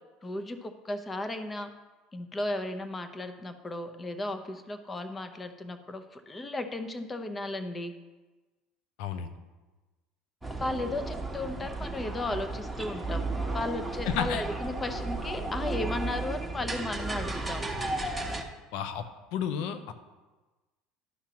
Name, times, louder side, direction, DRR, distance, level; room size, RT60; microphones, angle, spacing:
voice 1, 0.2-1.7 2.1-7.9 10.6-13.3 13.5-17.7, left 2 dB, 25° left, 8 dB, 0.9 m, -35 dB
voice 2, 9.0-9.3 14.0-14.4 18.7-19.1 19.3-19.9, left 8 dB, 70° left, 9 dB, 0.7 m, -31 dB
sound 1, 10.4-18.4, right 2 dB, 5° right, 1.1 m, -34 dB
11.5 x 5.8 x 3.0 m, 1.2 s
hypercardioid pair, 75°, 0 cm